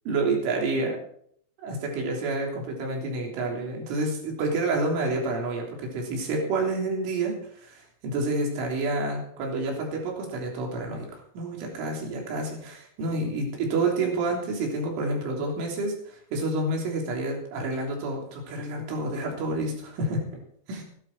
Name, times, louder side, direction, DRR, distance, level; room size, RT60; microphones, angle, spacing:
voice 1, 0.1-1.0 1.6-7.4 7.6-20.2 20.7-20.8, right 2 dB, 70° right, 0 dB, 5.8 m, -29 dB
17.0 x 12.0 x 4.6 m, 0.64 s
omnidirectional pair, 5.8 m